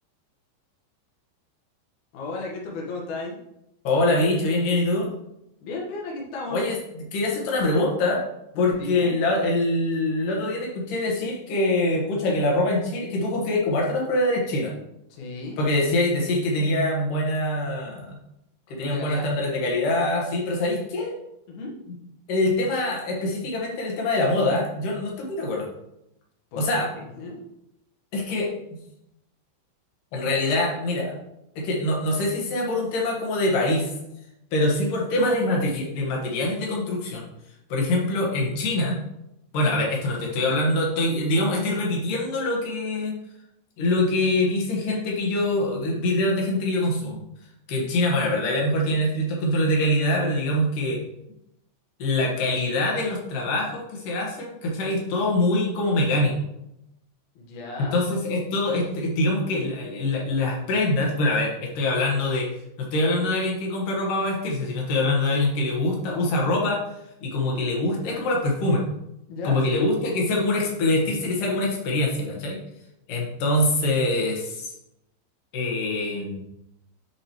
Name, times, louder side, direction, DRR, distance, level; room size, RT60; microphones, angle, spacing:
voice 1, 2.1-3.3 5.6-6.6 8.5-9.2 15.1-15.6 18.7-19.3 21.5-21.7 26.5-26.7 26.9-27.4 57.3-58.0 69.3-69.9, left 2 dB, 90° left, -2 dB, 1.7 m, -34 dB
voice 2, 3.8-5.1 6.5-8.2 8.6-14.7 15.6-18.2 18.7-21.2 22.3-25.7 26.6-26.9 28.1-28.5 30.1-31.2 31.6-33.9 34.5-37.2 37.7-39.0 39.5-43.2 43.8-47.2 47.7-51.0 52.0-56.4 57.9-62.5 62.8-66.8 67.2-68.8 69.4-72.6 73.1-74.7 75.5-76.4, left 1 dB, 65° left, -2 dB, 2.2 m, -24 dB
9.6 x 5.1 x 3.0 m, 0.84 s
omnidirectional pair, 5.6 m